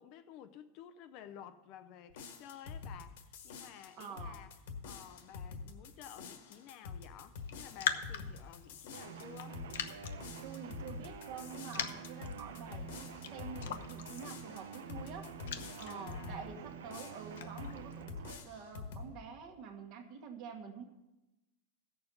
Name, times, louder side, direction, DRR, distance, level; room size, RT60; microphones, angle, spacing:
voice 1, 0.0-4.5 4.8-9.6 15.9-16.5, left 9 dB, 35° left, 0.5 m, -53 dB
sound 1, 2.1-16.4 16.9-17.8 18.1-19.1, left 5 dB, 65° left, 1.4 m, -47 dB
voice 2, 4.0-4.4 10.4-15.3 15.8-20.8, right 6 dB, 40° right, 1.4 m, -48 dB
Raindrop, 7.4-18.0, left 9 dB, 85° left, 0.8 m, -44 dB
sound 2, 8.9-18.4, right 7 dB, 90° right, 0.8 m, -48 dB
15.0 x 6.9 x 5.4 m
supercardioid pair, 170°, 0 cm